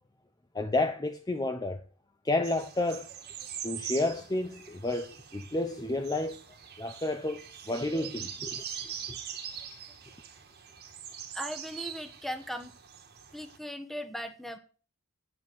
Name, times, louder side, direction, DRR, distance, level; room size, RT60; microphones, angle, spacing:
voice 1, 0.5-1.8 2.2-3.1 3.6-6.4 6.8-7.4 7.7-8.6, left 2 dB, 15° left, 0.7 m, -30 dB
sound 1, 2.4-13.6, right 8 dB, 45° right, 1.7 m, -43 dB
voice 2, 11.3-12.7 13.3-14.6, equal, ahead, 1.1 m, -38 dB
9.1 x 8.0 x 8.0 m
head